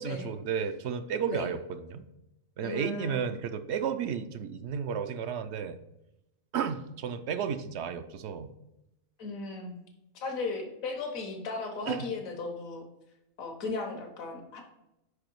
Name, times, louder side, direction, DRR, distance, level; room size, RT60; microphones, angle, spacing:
voice 1, 0.0-2.1 2.6-5.8 6.5-8.5 11.9-12.1, right 7 dB, 65° right, 10 dB, 0.7 m, -33 dB
voice 2, 2.6-3.2 9.2-9.8 10.2-12.9 13.4-14.6, left 3 dB, 80° left, 2 dB, 1.5 m, -36 dB
5.3 x 4.9 x 4.5 m, 0.89 s
omnidirectional pair, 1.4 m